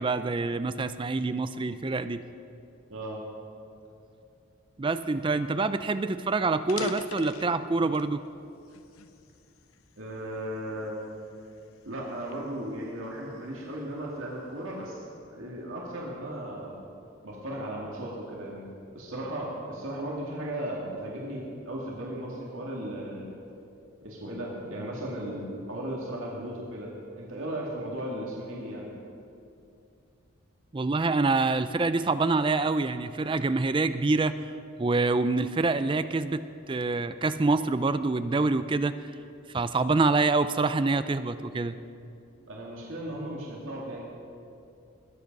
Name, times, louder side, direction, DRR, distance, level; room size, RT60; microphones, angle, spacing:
voice 1, 0.0-2.2 4.8-8.2 30.7-34.4 34.8-38.9 39.5-41.8, right 3 dB, 25° right, 12 dB, 0.4 m, -26 dB
voice 2, 2.9-3.2 10.0-10.9 11.8-16.8 17.2-23.3 24.0-28.9 42.5-44.0, right 1 dB, 75° right, -3 dB, 2.2 m, -36 dB
sound 1, 5.9-6.0 6.5-8.2 8.7-10.0 10.6-10.8 11.5-13.5, left 5 dB, 85° left, 0.6 m, -40 dB
21.0 x 7.9 x 5.3 m, 2.6 s
head